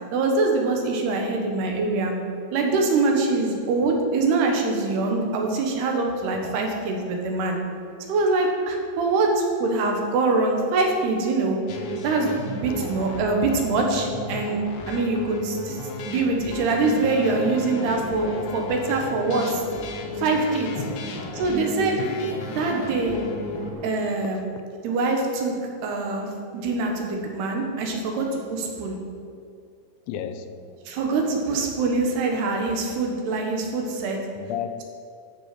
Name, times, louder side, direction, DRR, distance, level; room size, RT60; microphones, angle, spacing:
voice 1, 0.1-2.1 2.5-7.6 8.1-11.6 12.0-15.8 16.0-19.6 20.2-20.7 21.3-22.0 22.5-23.2 23.8-24.4 24.8-28.9 30.9-34.2, right 3 dB, 85° right, 3.4 m, -24 dB
sound 1, 11.7-23.7, left 2 dB, 65° left, 1.9 m, -34 dB
Traffic noise roadway noise / Engine, 16.6-23.9, right 1 dB, 55° right, 4.9 m, -42 dB
voice 2, 20.8-21.3 22.0-22.2 30.1-30.8 34.4-34.8, left 8 dB, 85° left, 2.7 m, -34 dB
13.0 x 7.0 x 5.9 m
omnidirectional pair, 4.5 m